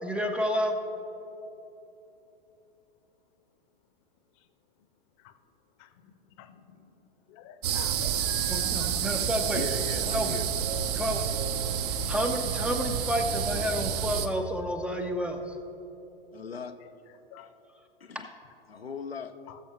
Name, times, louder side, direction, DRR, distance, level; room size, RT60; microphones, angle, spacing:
voice 1, 0.0-0.8 8.5-9.7 10.0-10.4 10.9-11.3 12.1-15.6, equal, 5° right, 0.5 m, -30 dB
voice 2, 5.8-6.9 7.3-9.0 16.5-16.6 17.3-17.5 19.5-19.6, left 11 dB, 35° left, 0.8 m, -48 dB
sound 1, 7.6-14.3, right 8 dB, 40° right, 0.7 m, -29 dB
voice 3, 9.5-10.4 16.3-16.8 17.4-17.5 18.0-18.3 18.7-19.4, left 6 dB, 85° left, 0.6 m, -39 dB
19.0 x 7.0 x 3.1 m
figure-of-eight pair, 100°, 30 cm